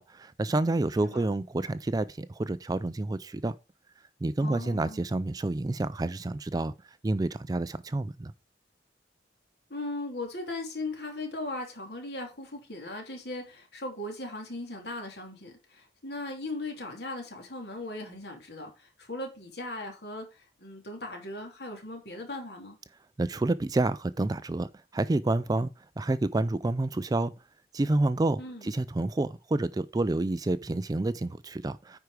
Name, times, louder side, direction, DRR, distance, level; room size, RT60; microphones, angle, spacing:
voice 1, 0.0-3.5 4.2-6.7 7.0-8.3 23.2-25.7 26.0-27.3 27.7-32.0, right 2 dB, 20° right, 0.3 m, -29 dB
voice 2, 4.4-5.0 9.7-22.8 28.4-28.7, left 2 dB, 60° left, 3.0 m, -38 dB
9.5 x 4.7 x 4.8 m
head